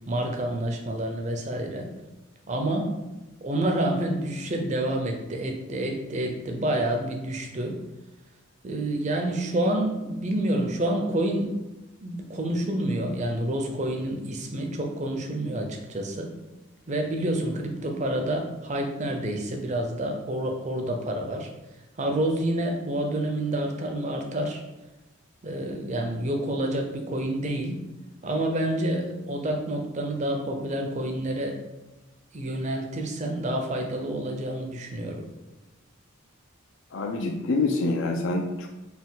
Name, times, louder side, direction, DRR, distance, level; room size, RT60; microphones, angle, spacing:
voice 1, 0.1-1.9 2.5-2.9 3.4-7.8 8.6-11.6 12.0-16.3 16.9-21.5 22.0-24.6 25.4-27.8 28.2-31.6 32.3-35.2, right 1 dB, 35° right, 3 dB, 0.5 m, -28 dB
voice 2, 36.9-38.7, left 3 dB, 60° left, 3 dB, 0.4 m, -26 dB
4.1 x 2.3 x 3.9 m, 1.0 s
head